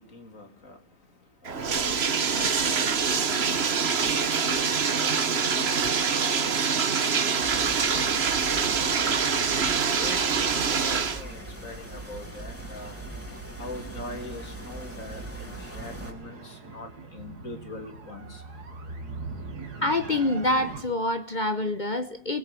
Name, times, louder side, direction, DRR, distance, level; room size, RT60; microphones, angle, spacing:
voice 1, 0.0-3.3 3.8-8.9 10.0-13.0 13.6-18.4, left 2 dB, 55° left, 5 dB, 3.3 m, -43 dB
Bathtub (filling or washing), 1.5-11.2, right 6 dB, 45° right, 1.3 m, -25 dB
sound 1, 7.4-16.1, right 1 dB, 10° left, 3.4 m, -40 dB
sound 2, 15.8-20.8, right 3 dB, 80° right, 2.7 m, -40 dB
voice 2, 19.8-22.4, left 2 dB, 35° left, 9 dB, 1.0 m, -26 dB
28.5 x 20.0 x 7.7 m, 0.73 s
omnidirectional pair, 1.7 m